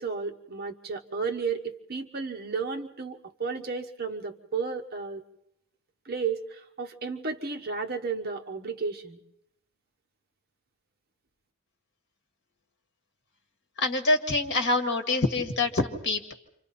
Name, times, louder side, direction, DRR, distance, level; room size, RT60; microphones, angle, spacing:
voice 1, 0.0-5.2 6.0-9.2, right 5 dB, 45° right, 5 dB, 1.2 m, -33 dB
voice 2, 13.8-16.3, left 2 dB, 50° left, 5 dB, 1.8 m, -26 dB
29.0 x 25.5 x 4.2 m, 0.77 s
head